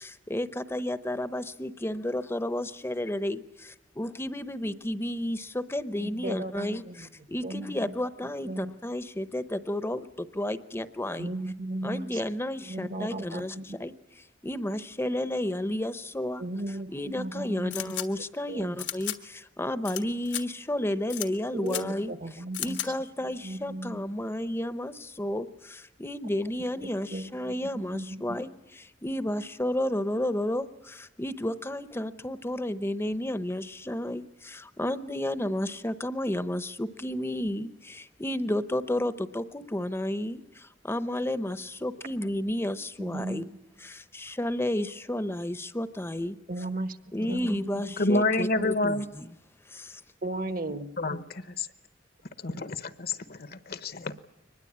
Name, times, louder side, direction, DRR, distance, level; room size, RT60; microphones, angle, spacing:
voice 1, 0.0-3.4 4.0-11.3 11.8-43.5 43.8-46.4 47.1-49.3 49.7-50.0, left 1 dB, 15° left, 13 dB, 0.8 m, -32 dB
voice 2, 6.0-7.1 7.4-7.9 8.5-8.7 11.2-12.2 12.6-13.8 16.4-17.9 18.5-18.8 21.5-22.8 23.4-24.0 27.1-28.4 43.0-43.6 46.5-47.0 47.3-47.8 48.6-48.7 50.2-50.9, right 1 dB, 50° right, 11 dB, 1.1 m, -36 dB
sound 1, 17.7-18.1 18.8-19.2 19.8-20.0 20.3-20.4 21.1-21.3 21.7-21.8 22.5-22.9, left 12 dB, 80° left, 1.5 m, -33 dB
voice 3, 48.0-49.1 51.0-51.7 52.4-54.2, left 2 dB, 55° left, 12 dB, 1.0 m, -28 dB
23.5 x 20.5 x 8.7 m, 0.89 s
head